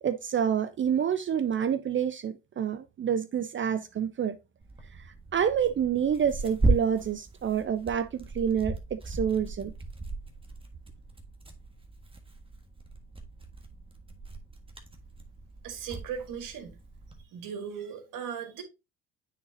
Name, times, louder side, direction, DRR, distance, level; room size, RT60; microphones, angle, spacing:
voice 1, 0.0-4.4 4.9-5.0 5.3-9.7, right 8 dB, 35° right, 0.6 m, -28 dB
Tearing, 4.6-17.2, right 2 dB, 15° right, 1.4 m, -36 dB
voice 2, 15.6-16.7 17.3-18.6, right 7 dB, 65° right, 1.9 m, -37 dB
9.2 x 3.9 x 2.7 m
supercardioid pair, 70°, 34 cm